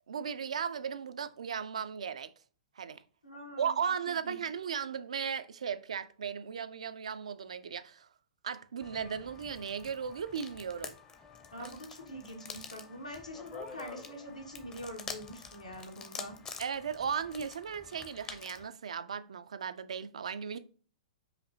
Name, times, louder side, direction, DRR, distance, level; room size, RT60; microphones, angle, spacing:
voice 1, 0.1-2.3 2.8-3.0 3.6-8.1 8.4-10.9 11.6-11.7 16.6-20.6, right 7 dB, 65° right, 0.3 m, -36 dB
voice 2, 3.2-3.8 4.2-4.3 11.5-16.4, equal, 85° left, 1.1 m, -44 dB
sound 1, 8.8-18.7, left 5 dB, 20° left, 0.5 m, -47 dB
5.0 x 2.6 x 2.7 m
figure-of-eight pair, 110°, 4 cm